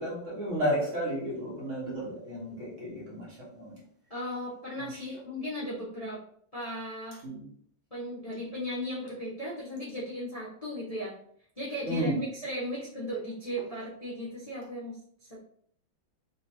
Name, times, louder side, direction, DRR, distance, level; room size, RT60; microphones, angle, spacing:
voice 1, 0.0-3.8 4.8-5.2 7.2-7.5 11.8-12.2, equal, 40° right, -5 dB, 1.5 m, -33 dB
voice 2, 4.1-6.2 6.5-7.2 7.9-11.1 11.6-15.4, equal, 70° left, -8 dB, 0.3 m, -36 dB
3.8 x 2.9 x 2.8 m, 0.62 s
omnidirectional pair, 2.2 m